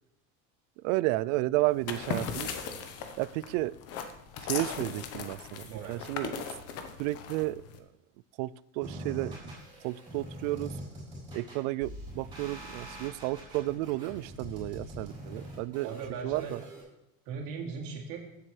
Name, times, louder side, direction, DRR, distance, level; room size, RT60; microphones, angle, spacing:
voice 1, 0.8-2.5 3.2-3.8 4.4-6.4 7.0-7.6 8.4-9.5 9.8-10.7 11.3-15.9 16.2-16.6, right 18 dB, 85° right, 20 dB, 0.5 m, -32 dB
sound 1, 1.7-7.8, left 6 dB, 40° left, 1.0 m, -38 dB
voice 2, 5.7-6.1 15.3-15.5 15.8-16.6 17.2-18.3, right 5 dB, 60° right, -1 dB, 2.7 m, -39 dB
sound 2, 8.8-16.8, equal, 10° right, 4.0 m, -43 dB
15.0 x 7.6 x 3.2 m, 0.88 s
cardioid pair, 180°, 37 cm